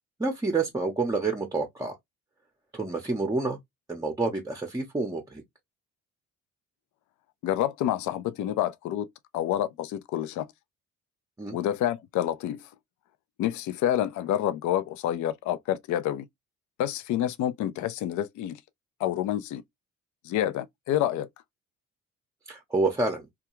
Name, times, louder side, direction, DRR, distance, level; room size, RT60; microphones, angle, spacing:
voice 1, 0.2-2.0 2.7-3.6 3.9-5.4 11.4-11.6 22.5-23.3, right 3 dB, 10° right, 0.6 m, -28 dB
voice 2, 7.4-9.1 9.3-10.5 11.5-12.6 13.4-16.3 16.8-18.6 19.0-19.6 20.2-21.3, left 12 dB, 65° left, 0.5 m, -28 dB
2.3 x 2.3 x 2.9 m
supercardioid pair, 75°, 32 cm